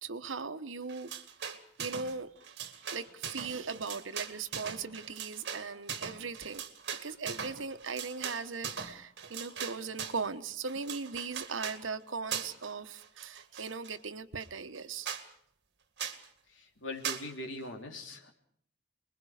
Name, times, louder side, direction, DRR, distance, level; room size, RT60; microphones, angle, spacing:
voice 1, 0.0-1.1 1.8-2.3 2.9-6.6 7.0-15.1, right 4 dB, 85° right, 1.2 m, -39 dB
sound 1, 0.9-2.1 2.4-10.3 10.7-11.8 12.3-12.7 13.0-13.9 14.4-14.5 14.7-14.8 15.0-15.3 16.0-16.2 17.0-17.3, right 7 dB, 60° right, 2.2 m, -40 dB
voice 2, 16.6-18.3, left 1 dB, 80° left, 3.2 m, -41 dB
27.0 x 21.5 x 5.0 m
head